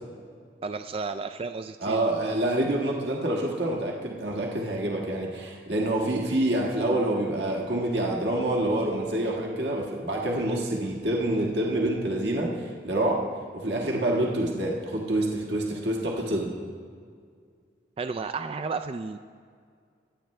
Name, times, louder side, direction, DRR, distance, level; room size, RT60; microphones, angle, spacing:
voice 1, 0.6-2.0 18.0-19.2, right 4 dB, 30° right, 9 dB, 0.3 m, -32 dB
voice 2, 1.8-16.5, right 1 dB, 70° right, -1 dB, 1.6 m, -27 dB
23.5 x 9.0 x 3.2 m, 2.1 s
head